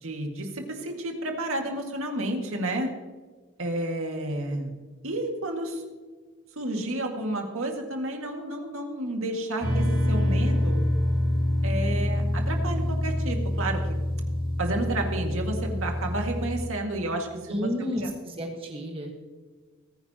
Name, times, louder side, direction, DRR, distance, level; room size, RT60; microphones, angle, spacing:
voice 1, 0.0-2.9 3.6-4.7 5.0-5.8 6.6-10.8 11.6-13.8 14.6-18.1, right 1 dB, 65° right, 2 dB, 2.1 m, -31 dB
sound 1, 9.6-16.7, left 1 dB, 40° right, 2.1 m, -26 dB
voice 2, 17.5-19.1, equal, 25° right, 1 dB, 1.4 m, -31 dB
20.0 x 9.9 x 3.0 m, 1.4 s
head